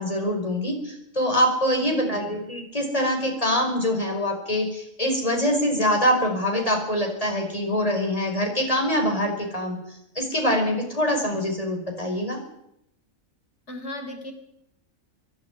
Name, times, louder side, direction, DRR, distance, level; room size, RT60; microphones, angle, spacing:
voice 1, 0.0-9.8 10.1-12.4, equal, 25° left, 2 dB, 5.1 m, -24 dB
voice 2, 1.8-2.3 13.7-14.3, left 1 dB, 55° left, 4 dB, 4.0 m, -37 dB
25.0 x 11.0 x 9.5 m, 0.81 s
omnidirectional pair, 1.4 m